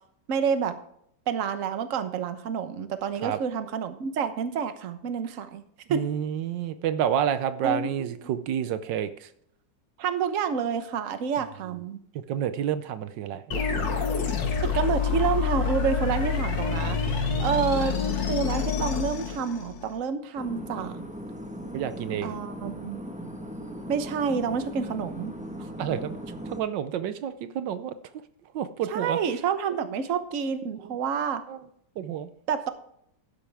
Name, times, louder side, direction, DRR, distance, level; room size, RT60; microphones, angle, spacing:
voice 1, 0.3-0.8 1.3-5.6 5.9-6.0 7.6-8.1 10.0-12.0 14.6-18.0 18.3-21.0 22.2-23.0 23.9-25.3 28.9-31.4 32.5-32.7, right 6 dB, 50° right, 10 dB, 1.3 m, -28 dB
voice 2, 5.9-9.1 12.3-14.0 17.3-17.6 21.7-22.3 25.8-26.2 26.5-27.9 28.5-29.2 31.5-31.6 32.0-32.3, right 9 dB, 80° right, 12 dB, 1.4 m, -29 dB
sound 1, 13.5-20.0, left 6 dB, 85° left, 2.3 m, -27 dB
sound 2, 20.4-26.6, equal, 5° right, 1.0 m, -38 dB
12.0 x 10.5 x 3.4 m, 0.69 s
omnidirectional pair, 1.9 m